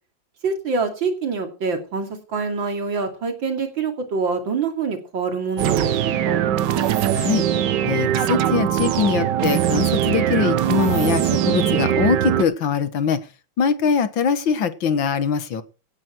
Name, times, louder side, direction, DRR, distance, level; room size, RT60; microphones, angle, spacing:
voice 1, 0.4-6.4, right 4 dB, 90° right, 5 dB, 3.5 m, -25 dB
sound 1, 5.6-12.4, right 10 dB, 70° right, 1.5 m, -21 dB
voice 2, 7.1-7.4 7.9-13.2 13.6-15.6, left 6 dB, 90° left, 12 dB, 2.1 m, -22 dB
17.5 x 9.8 x 4.6 m, 0.34 s
omnidirectional pair, 2.0 m